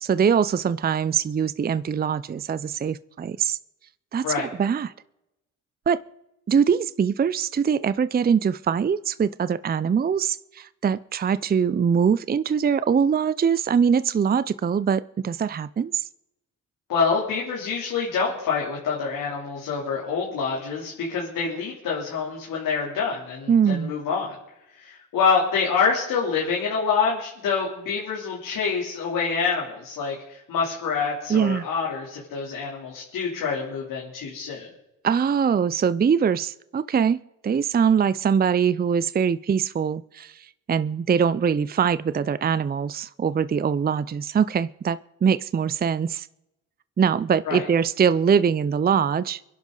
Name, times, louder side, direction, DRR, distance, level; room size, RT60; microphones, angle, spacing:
voice 1, 0.0-3.6 4.1-4.9 5.9-6.0 6.5-16.1 23.5-23.9 31.3-31.7 35.0-46.3 47.0-49.4, right 7 dB, 30° right, 16 dB, 0.6 m, -23 dB
voice 2, 16.9-24.3 24.7-34.7 47.4-47.6, left 5 dB, 75° left, -4 dB, 3.2 m, -26 dB
24.5 x 11.0 x 3.9 m, 0.91 s
supercardioid pair, 60°, 33 cm